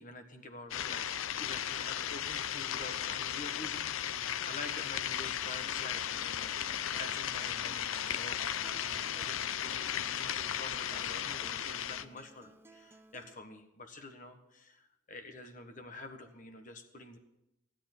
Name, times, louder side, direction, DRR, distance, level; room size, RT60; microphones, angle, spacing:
voice 1, 0.0-17.2, left 2 dB, 40° left, 7 dB, 1.4 m, -48 dB
sound 1, 0.7-12.1, left 10 dB, 75° left, 0.5 m, -36 dB
Acoustic guitar, 5.3-13.3, right 1 dB, 10° right, 0.5 m, -58 dB
16.0 x 9.2 x 6.1 m, 0.90 s
head